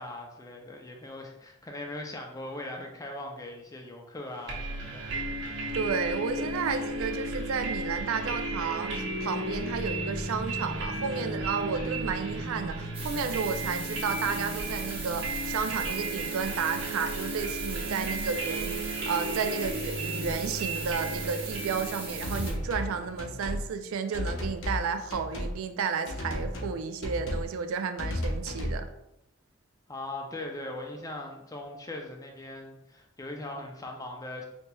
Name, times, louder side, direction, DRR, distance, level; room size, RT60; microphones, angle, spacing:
voice 1, 0.0-5.1 29.9-34.4, left 1 dB, 15° left, 2 dB, 0.4 m, -40 dB
sound 1, 4.5-23.2, right 2 dB, 60° right, 0.8 m, -34 dB
voice 2, 5.7-28.9, right 5 dB, 85° right, 8 dB, 0.4 m, -32 dB
sound 2, 12.9-22.5, right 4 dB, 25° right, 0.6 m, -40 dB
sound 3, 22.2-22.9 23.2-23.6 24.1-24.8 25.1-25.5 26.1-26.7 27.0-27.5 28.0-28.8, left 1 dB, 70° left, 0.7 m, -33 dB
4.2 x 2.9 x 2.2 m, 0.86 s
head